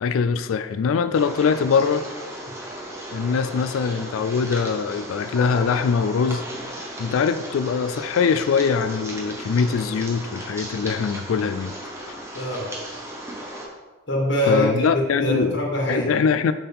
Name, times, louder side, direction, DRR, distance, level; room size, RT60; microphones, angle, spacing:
voice 1, 0.0-2.1 3.1-6.4 7.0-11.8 14.5-15.6 15.9-16.5, left 6 dB, 80° left, 11 dB, 0.3 m, -22 dB
sound 1, 1.1-13.7, right 1 dB, 15° right, 0.9 m, -36 dB
voice 2, 12.3-12.7 14.1-16.1, equal, 60° left, -2 dB, 1.5 m, -23 dB
6.8 x 5.6 x 3.6 m, 1.3 s
head